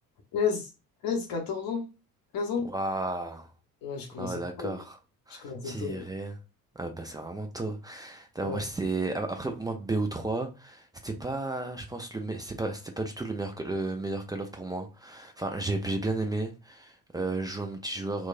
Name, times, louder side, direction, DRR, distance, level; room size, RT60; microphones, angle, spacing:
voice 1, 0.3-0.7 1.0-1.9 2.3-2.7 3.8-4.7 5.4-6.1 8.4-8.6, left 5 dB, 50° left, 0.8 m, -31 dB
voice 2, 2.6-3.5 4.2-5.0 5.3-6.4 6.8-18.3, right 2 dB, 10° right, 0.3 m, -33 dB
3.0 x 2.2 x 2.4 m
figure-of-eight pair, 55°, 47 cm